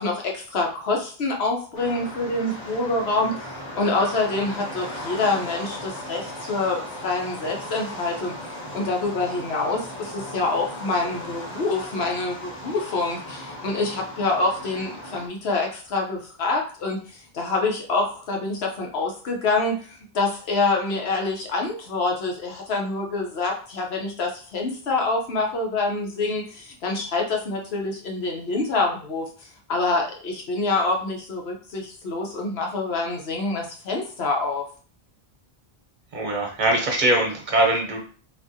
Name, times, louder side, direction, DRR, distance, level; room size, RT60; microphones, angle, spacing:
voice 1, 0.0-29.3 29.7-34.6, left 3 dB, 85° left, 1 dB, 1.0 m, -26 dB
sound 1, 1.7-15.3, left 1 dB, 45° left, 1.0 m, -37 dB
voice 2, 36.1-38.0, right 1 dB, 50° right, 1 dB, 1.0 m, -22 dB
3.6 x 2.6 x 2.7 m, 0.41 s
omnidirectional pair, 1.0 m